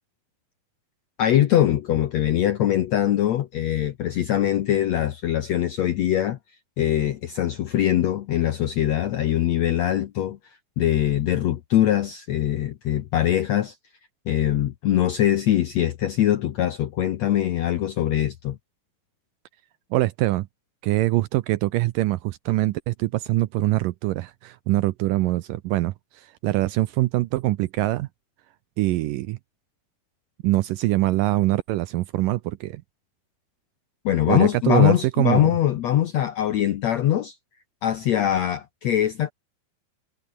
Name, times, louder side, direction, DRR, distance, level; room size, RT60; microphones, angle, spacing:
voice 1, 1.2-6.4 6.8-10.4 10.8-13.8 14.3-18.6 34.0-37.3 37.8-39.3, left 11 dB, 75° left, 1.6 m, -22 dB
voice 2, 19.9-20.5 20.8-28.1 28.8-29.4 30.4-32.8 34.3-35.5, right 17 dB, 80° right, 2.0 m, -23 dB
omnidirectional pair, 4.5 m